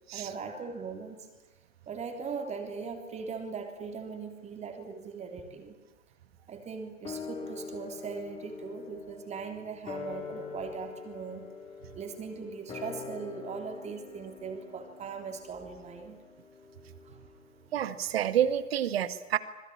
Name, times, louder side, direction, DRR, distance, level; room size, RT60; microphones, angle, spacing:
voice 1, 0.1-1.3 1.9-5.8 6.5-11.5 12.0-16.2 17.0-17.2, right 5 dB, 15° right, 5 dB, 3.5 m, -40 dB
sound 1, 7.0-17.7 17.9-18.0, left 5 dB, 15° left, 4.1 m, -44 dB
voice 2, 17.7-19.4, right 10 dB, 50° right, 13 dB, 1.9 m, -28 dB
26.5 x 21.0 x 8.7 m, 1.1 s
figure-of-eight pair, 110°, 38 cm